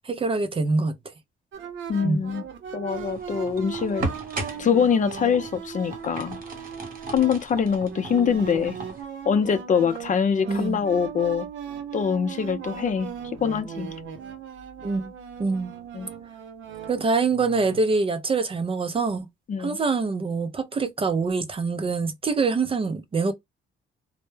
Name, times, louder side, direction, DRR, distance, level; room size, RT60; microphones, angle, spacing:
voice 1, 0.0-0.9 2.0-2.3 10.5-10.8 14.8-15.1 15.4-15.7 16.9-19.3 19.6-23.3, right 4 dB, 30° right, 0.5 m, -25 dB
sound 1, 1.5-17.8, right 7 dB, 70° right, 0.7 m, -38 dB
voice 2, 1.9-2.4 2.7-4.1 4.6-6.4 7.1-8.8 9.3-11.5 11.9-13.1 13.4-13.9 15.9-16.1 19.5-19.8, left 7 dB, 40° left, 0.5 m, -24 dB
sound 2, 2.9-9.0, right 2 dB, 45° right, 0.9 m, -37 dB
2.1 x 2.0 x 3.1 m
cardioid pair, 90°, 20 cm